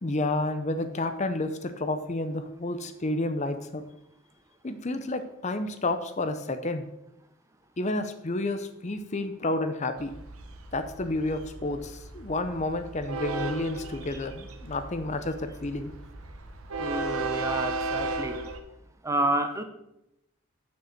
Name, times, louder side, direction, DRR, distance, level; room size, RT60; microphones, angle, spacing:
voice 1, 0.0-3.8 4.6-6.9 7.8-10.2 10.7-15.9, left 2 dB, 35° left, 9 dB, 0.6 m, -30 dB
Train, 10.0-18.6, right 3 dB, 85° right, 1.0 m, -35 dB
voice 2, 16.8-18.4 19.0-19.6, right 1 dB, 15° right, 8 dB, 0.6 m, -29 dB
6.8 x 6.6 x 6.5 m, 0.85 s
head